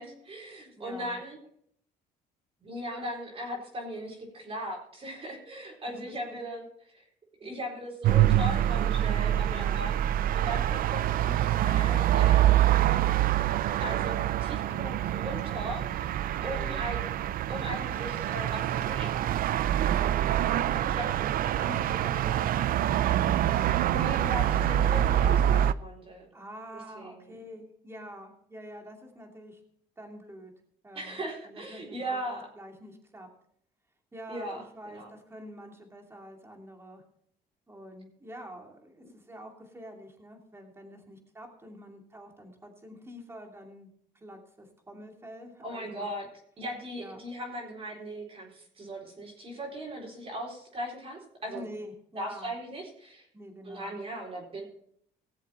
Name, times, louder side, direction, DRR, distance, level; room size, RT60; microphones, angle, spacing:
voice 1, 0.0-1.4 2.6-7.0 7.4-10.0 10.3-12.6 13.8-16.1 16.4-17.1 17.5-19.3 20.9-21.3 23.9-26.3 26.9-27.3 30.9-32.5 34.3-35.1 45.6-46.3 46.6-51.6 52.1-53.3 53.6-54.6, right 1 dB, 35° right, -2 dB, 4.1 m, -38 dB
voice 2, 0.8-1.2 5.8-6.4 7.4-7.5 9.4-9.8 16.3-16.9 19.9-20.3 20.6-21.0 21.5-23.1 26.3-29.6 30.0-30.5 30.8-33.3 34.1-37.0 37.7-43.9 44.1-46.1 47.0-47.2 51.5-52.5 53.3-54.0, equal, 15° right, 2 dB, 2.6 m, -46 dB
sound 1, 8.0-25.7, right 12 dB, 60° right, 0.5 m, -26 dB
18.5 x 7.4 x 4.3 m, 0.66 s
cardioid pair, 110°, 17 cm